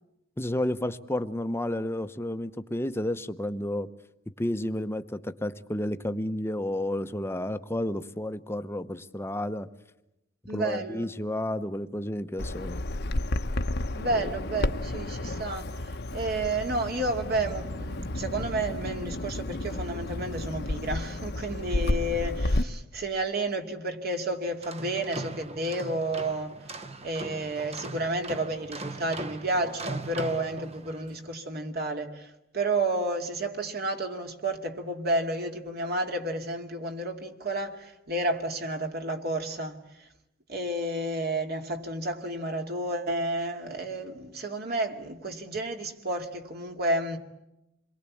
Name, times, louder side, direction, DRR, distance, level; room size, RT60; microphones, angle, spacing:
voice 1, 0.4-3.9 4.4-9.7 10.5-12.8 14.2-14.3, left 1 dB, 10° left, 0.9 m, -31 dB
voice 2, 10.5-11.1 13.9-26.8 27.0-40.1 40.5-47.2, right 2 dB, 50° right, 2.5 m, -31 dB
Bird vocalization bird call bird song, 12.4-22.6, left 1 dB, 55° left, 1.0 m, -31 dB
sound 1, 24.5-31.2, right 2 dB, 30° right, 1.0 m, -39 dB
28.0 x 22.5 x 8.5 m
head